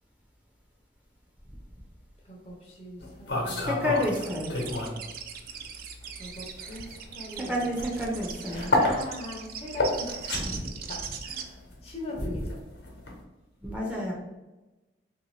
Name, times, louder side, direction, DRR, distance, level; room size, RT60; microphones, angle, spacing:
voice 1, 2.2-3.8 6.2-7.7 8.4-12.6, left 1 dB, 35° left, -1 dB, 0.6 m, -41 dB
sound 1, 3.0-5.1 5.4-13.2, left 2 dB, 75° left, 1.0 m, -31 dB
voice 2, 3.6-4.6 7.3-8.7 10.4-10.6 13.6-14.1, left 1 dB, 5° right, -4 dB, 0.6 m, -30 dB
sound 2, 3.9-11.4, right 8 dB, 50° right, 0.3 m, -40 dB
3.1 x 2.7 x 3.2 m, 1.1 s
head